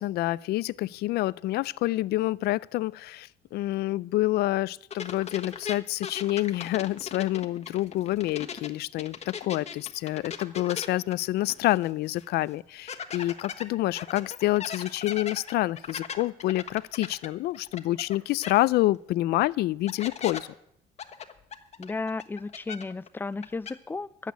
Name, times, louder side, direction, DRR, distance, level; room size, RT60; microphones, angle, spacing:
voice 1, 0.0-20.5, left 16 dB, 70° left, 0.4 m, -28 dB
sound 1, 4.9-8.7 9.0-11.9 12.2-12.3 12.9-18.2 18.4-18.5 19.4-19.5 19.9-20.4 21.0-23.1 23.3-23.7, left 7 dB, 40° left, 1.3 m, -38 dB
voice 2, 21.8-24.3, left 3 dB, 10° left, 0.4 m, -34 dB
11.5 x 8.1 x 9.3 m
cardioid pair, 110°, 17 cm